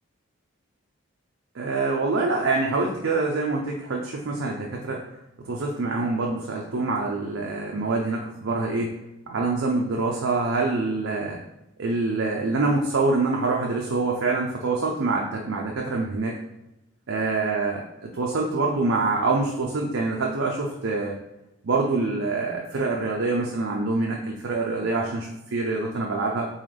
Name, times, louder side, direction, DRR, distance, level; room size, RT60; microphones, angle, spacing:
voice 1, 1.5-5.0 5.5-8.9 9.3-11.4 11.8-16.4 17.1-21.2 21.6-26.5, right 3 dB, 65° right, -1 dB, 0.5 m, -25 dB
3.9 x 3.8 x 3.2 m, 0.93 s
head